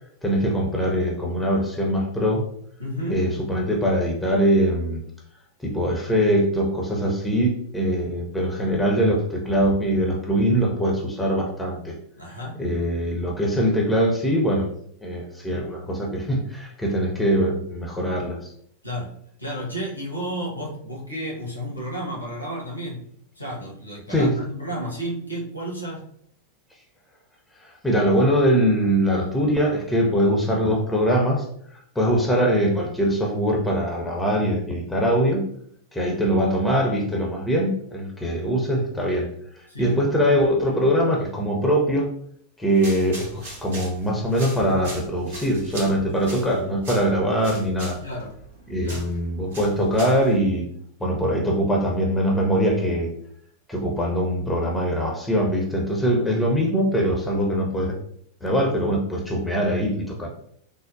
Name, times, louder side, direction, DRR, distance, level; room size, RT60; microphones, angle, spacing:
voice 1, 0.2-2.4 3.1-5.0 5.6-11.9 12.6-14.7 15.0-18.4 24.1-24.3 27.6-31.5 32.0-35.5 35.9-39.3 39.6-42.1 42.6-48.0 48.7-50.7 51.0-53.1 53.7-58.0 58.4-60.3, equal, 5° left, 0 dB, 0.6 m, -22 dB
voice 2, 2.8-3.3 12.2-12.6 18.8-19.1 19.4-23.0 23.4-26.0 39.7-40.0 48.0-48.3 48.8-49.1, equal, 90° left, -2 dB, 0.9 m, -32 dB
sound 1, 42.7-50.4, right 2 dB, 60° right, 0.9 m, -41 dB
3.4 x 2.0 x 2.6 m, 0.67 s
figure-of-eight pair, 90°, 0 cm